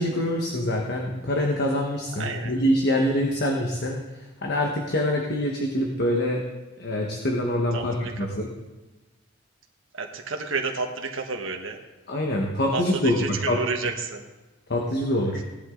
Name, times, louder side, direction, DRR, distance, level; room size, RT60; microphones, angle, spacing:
voice 1, 0.0-6.4 6.8-8.5 12.1-13.6 14.7-15.4, left 1 dB, 55° left, 0 dB, 1.4 m, -25 dB
voice 2, 2.2-2.5 7.7-8.1 9.9-11.8 12.7-14.2 15.3-15.4, right 4 dB, 75° right, 2 dB, 1.4 m, -30 dB
17.5 x 11.0 x 3.9 m, 1.1 s
head